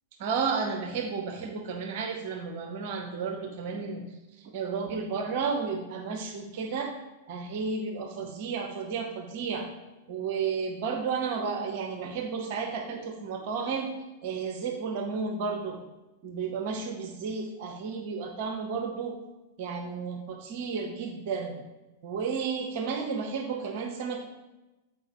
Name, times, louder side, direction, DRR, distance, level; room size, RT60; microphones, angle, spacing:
voice 1, 0.2-4.1 4.4-6.9 7.3-9.7 10.1-13.9 14.2-15.8 16.2-19.2 19.6-21.7 22.0-24.2, right 5 dB, 50° right, 5 dB, 0.7 m, -32 dB
7.9 x 4.8 x 3.0 m, 1.0 s
figure-of-eight pair, 95°, 0 cm